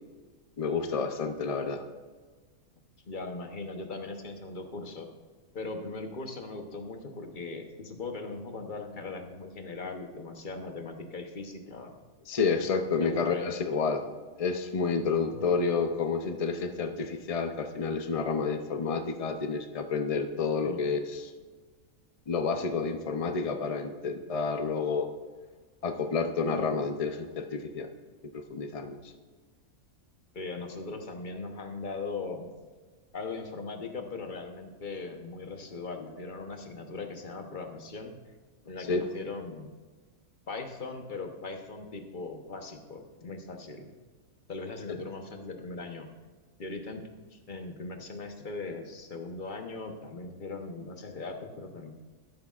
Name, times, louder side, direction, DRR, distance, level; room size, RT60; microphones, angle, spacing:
voice 1, 0.6-1.8 12.3-14.0 14.4-21.3 22.3-25.1 25.8-27.9 28.3-29.1 38.9-39.0 44.9-45.0, left 4 dB, 65° left, 6 dB, 0.3 m, -30 dB
voice 2, 3.1-5.1 5.5-11.9 13.0-13.5 15.3-15.5 20.6-20.8 26.5-26.7 30.3-32.5 33.1-38.2 38.6-39.7 40.5-43.9 44.5-46.1 46.6-47.0 47.3-51.9, left 3 dB, 40° left, 5 dB, 1.0 m, -39 dB
12.5 x 11.0 x 2.4 m, 1.4 s
omnidirectional pair, 1.5 m